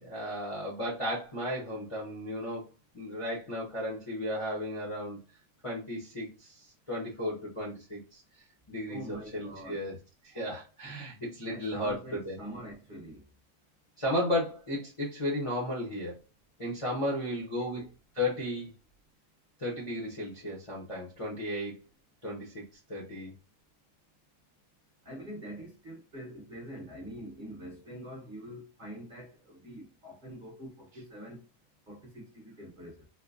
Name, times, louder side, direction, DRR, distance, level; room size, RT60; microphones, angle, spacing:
voice 1, 0.0-5.2 5.6-8.2 8.7-9.9 10.2-12.4 14.0-16.2 16.6-17.9 18.1-18.7 19.6-21.8 22.2-22.6 22.9-23.3, left 1 dB, 30° left, 0.6 m, -34 dB
voice 2, 8.9-9.8 11.4-13.2 17.6-17.9 25.0-31.4 31.9-33.0, equal, 35° right, 1.0 m, -45 dB
4.5 x 2.1 x 2.5 m
omnidirectional pair, 1.7 m